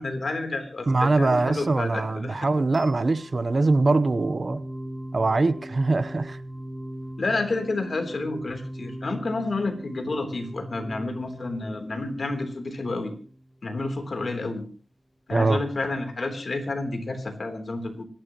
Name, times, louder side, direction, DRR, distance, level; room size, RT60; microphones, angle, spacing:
voice 1, 0.0-2.4 7.2-13.1 13.6-14.6 15.3-18.1, left 2 dB, 60° left, 6 dB, 3.5 m, -30 dB
voice 2, 0.9-4.6 5.1-6.4 15.3-15.6, right 3 dB, 50° right, 13 dB, 0.9 m, -22 dB
sound 1, 2.7-13.7, right 1 dB, 10° left, 5.0 m, -40 dB
25.5 x 12.0 x 3.1 m, 0.41 s
wide cardioid pair, 90°, 0 cm